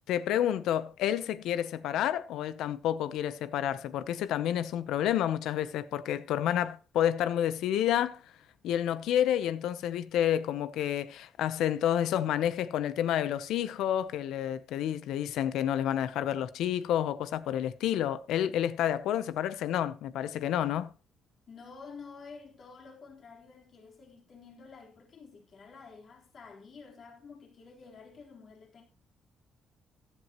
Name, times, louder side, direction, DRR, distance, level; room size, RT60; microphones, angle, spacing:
voice 1, 0.1-8.2 8.6-20.9, left 11 dB, 85° left, 0.7 m, -29 dB
voice 2, 21.5-28.8, left 5 dB, 55° left, 3.8 m, -50 dB
14.5 x 11.0 x 3.0 m
cardioid pair, 90°, 0 cm